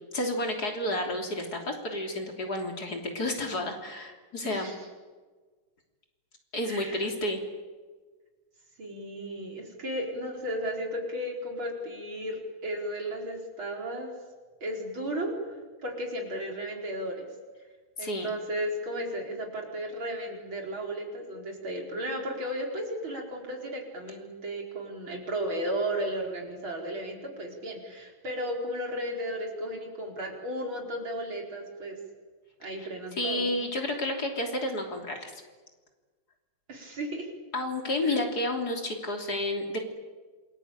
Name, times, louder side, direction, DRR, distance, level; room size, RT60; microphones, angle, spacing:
voice 1, 0.1-4.7 6.5-7.4 18.0-18.3 32.8-32.9 33.2-35.3 37.5-39.8, left 1 dB, 50° left, 3 dB, 3.8 m, -31 dB
voice 2, 6.7-7.1 8.8-14.1 14.6-17.3 18.0-32.0 32.6-33.5 36.7-37.3 38.0-38.2, equal, 75° right, 1 dB, 5.4 m, -34 dB
27.5 x 21.0 x 8.9 m, 1.4 s
omnidirectional pair, 2.2 m